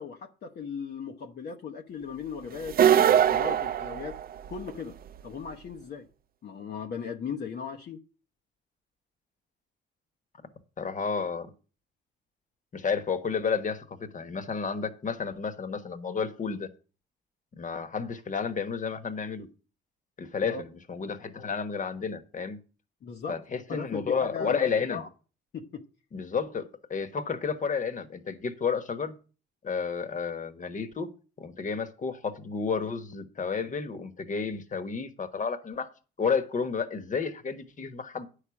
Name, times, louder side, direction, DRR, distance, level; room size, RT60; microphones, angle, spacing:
voice 1, 0.0-4.2 4.5-4.9 5.2-6.1 6.4-8.0 20.4-20.6 23.0-23.4 23.7-25.1 25.5-25.9, left 6 dB, 55° left, 1.0 m, -38 dB
sound 1, 2.7-4.7, right 9 dB, 50° right, 0.5 m, -22 dB
voice 2, 10.8-11.5 12.7-16.7 17.6-19.5 20.2-22.6 23.3-25.0 26.1-29.1 29.6-35.9 36.2-38.3, left 5 dB, 40° left, 1.3 m, -31 dB
9.8 x 5.0 x 7.1 m
cardioid pair, 90°, 20 cm